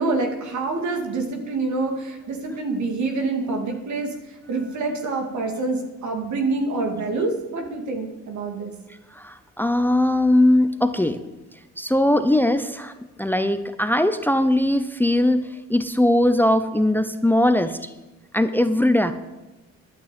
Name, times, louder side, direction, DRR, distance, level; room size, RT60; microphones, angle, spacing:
voice 1, 0.0-4.1 4.5-8.7, right 3 dB, 70° right, 3 dB, 2.5 m, -26 dB
voice 2, 9.1-11.2 11.8-12.9 13.2-17.9 18.3-19.1, left 1 dB, 5° left, 11 dB, 0.7 m, -20 dB
11.5 x 6.1 x 9.2 m, 1.1 s
cardioid pair, 90°, 30 cm